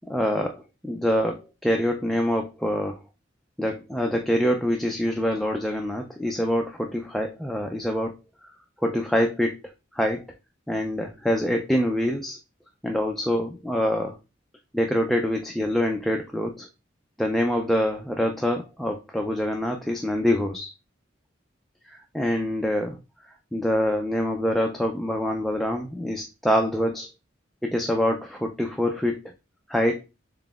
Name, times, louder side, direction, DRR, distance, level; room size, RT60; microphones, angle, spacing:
voice 1, 0.1-3.0 3.6-8.1 8.8-9.6 9.9-10.2 10.7-12.4 12.8-14.2 14.7-16.7 17.2-20.7 21.9-23.0 23.5-27.1 27.6-29.3 29.7-30.0, equal, ahead, 2 dB, 0.3 m, -25 dB
3.9 x 3.7 x 2.3 m, 0.27 s
head